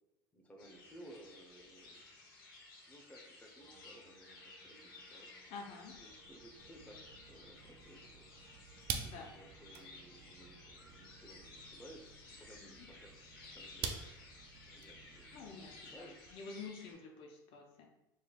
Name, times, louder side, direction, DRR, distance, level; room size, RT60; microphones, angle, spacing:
voice 1, 0.3-2.1 2.9-5.3 6.0-8.3 9.2-12.0 12.3-13.2 13.4-14.0 14.7-16.2, right 1 dB, 10° left, 1 dB, 0.8 m, -58 dB
sound 1, 0.6-16.9, left 3 dB, 80° left, 1.0 m, -56 dB
sound 2, 3.6-11.4, right 2 dB, 90° right, 0.9 m, -66 dB
voice 2, 5.5-6.0 9.0-9.3 12.6-12.7 15.3-17.9, left 4 dB, 55° left, 2 dB, 0.6 m, -49 dB
sound 3, 5.9-16.4, right 6 dB, 60° right, 0.5 m, -48 dB
4.4 x 3.0 x 2.4 m, 0.87 s
hypercardioid pair, 70°, 11 cm